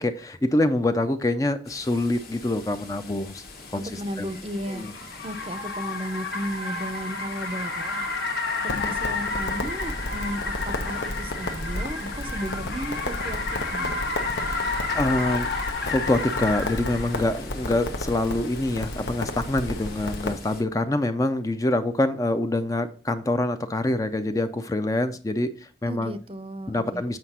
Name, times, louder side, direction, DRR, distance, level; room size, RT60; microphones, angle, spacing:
voice 1, 0.0-3.4 3.7-4.3 4.7-4.9 14.4-14.7 14.9-15.5 15.8-26.1 26.7-27.2, left 1 dB, 20° left, 9 dB, 0.4 m, -25 dB
sound 1, 1.6-20.6, left 3 dB, 55° left, 1.2 m, -43 dB
Car, 3.4-17.3, left 3 dB, 70° left, 1.4 m, -31 dB
voice 2, 3.7-4.9 5.2-8.1 8.6-14.0 25.9-27.0, equal, 30° right, 11 dB, 0.5 m, -34 dB
Crackle, 8.7-20.3, left 1 dB, 85° left, 1.0 m, -33 dB
7.9 x 5.0 x 4.2 m, 0.40 s
head